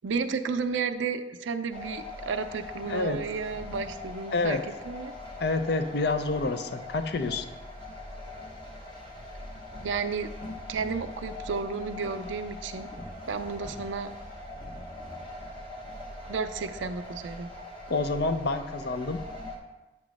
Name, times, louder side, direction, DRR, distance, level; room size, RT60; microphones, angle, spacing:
voice 1, 0.0-5.1 9.8-10.3 10.7-12.9 13.3-14.1 16.3-17.5, right 5 dB, 75° right, 9 dB, 0.5 m, -32 dB
sound 1, 1.7-19.6, left 2 dB, 25° left, 1.0 m, -41 dB
voice 2, 2.9-3.2 4.3-4.6 5.4-7.4 17.9-19.2, left 3 dB, 55° left, 8 dB, 0.5 m, -28 dB
8.2 x 3.0 x 6.3 m, 1.1 s
head